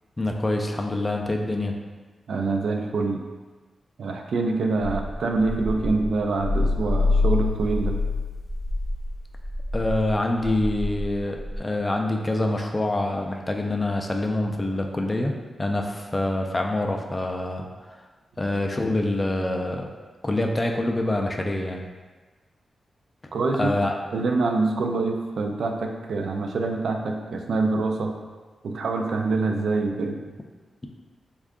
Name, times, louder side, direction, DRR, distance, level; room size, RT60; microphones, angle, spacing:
voice 1, 0.2-1.7 9.7-15.3 15.6-18.0 18.4-19.8 20.2-21.8 23.6-24.0, left 1 dB, 20° left, 2 dB, 0.3 m, -26 dB
voice 2, 2.3-3.2 4.0-8.0 23.3-23.7 24.1-28.1 28.6-30.2, right 3 dB, 75° right, 3 dB, 0.3 m, -25 dB
sound 1, 4.8-11.6, equal, 10° right, 0.7 m, -32 dB
sound 2, 6.4-9.1, left 3 dB, 85° left, 0.6 m, -24 dB
3.6 x 2.3 x 3.5 m, 1.3 s
wide cardioid pair, 155°, 0 cm